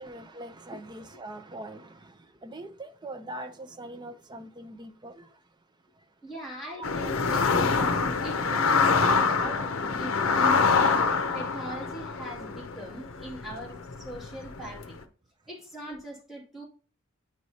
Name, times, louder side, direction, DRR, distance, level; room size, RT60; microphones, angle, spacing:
voice 1, 0.0-2.2 2.4-5.3 6.8-6.9, right 1 dB, 20° right, 0.5 m, -42 dB
voice 2, 6.2-7.5 7.8-11.1 11.3-15.0 15.5-16.6, right 1 dB, ahead, 2.5 m, -41 dB
sound 1, 6.8-14.9, left 4 dB, 70° left, 0.6 m, -25 dB
9.2 x 4.6 x 2.8 m
head